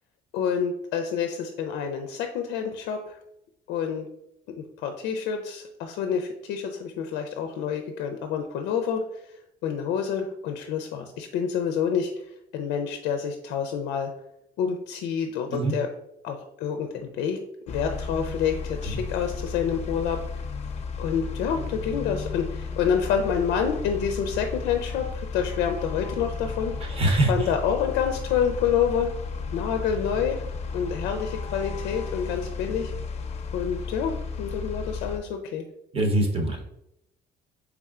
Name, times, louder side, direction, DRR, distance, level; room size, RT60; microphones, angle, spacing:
voice 1, 0.3-3.2 3.7-4.1 4.5-9.3 9.6-12.1 12.5-14.1 14.6-15.9 16.2-17.4 17.7-20.2 21.0-27.0 27.3-29.1 29.5-30.4 30.7-32.9 33.5-35.6, left 7 dB, 90° left, 6 dB, 0.4 m, -28 dB
sound 1, 17.7-35.2, left 5 dB, 40° left, 0.5 m, -34 dB
voice 2, 26.8-27.5 35.9-36.6, right 2 dB, 35° right, 2 dB, 0.9 m, -23 dB
4.3 x 3.5 x 2.4 m, 0.80 s
cardioid pair, 110°, 17 cm